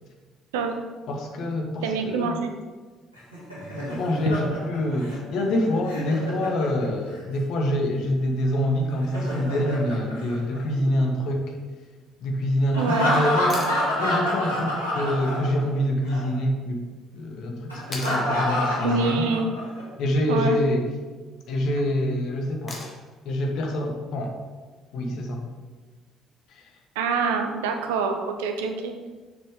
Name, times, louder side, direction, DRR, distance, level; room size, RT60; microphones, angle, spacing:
voice 1, 1.1-2.4 3.9-11.6 12.2-16.8 17.1-19.4 20.0-20.8 21.5-22.8 23.2-24.4 24.9-25.4 26.5-26.6, left 1 dB, 55° left, 2 dB, 1.2 m, -26 dB
voice 2, 1.8-2.5 12.8-13.1 18.8-19.5 20.3-20.6 26.9-28.9, right 5 dB, 70° right, 5 dB, 0.8 m, -26 dB
Laughter, 3.1-7.2 8.9-11.0 12.7-15.8 16.1-16.2 17.7-19.8, left 1 dB, 90° right, 2.1 m, -28 dB
sound 1, 13.5-13.8 16.0-16.1 17.9-18.2 20.3-20.7 22.7-23.2 25.3-25.4, left 2 dB, 30° left, 1.9 m, -37 dB
6.9 x 6.7 x 3.6 m, 1.3 s
figure-of-eight pair, 50°, 0 cm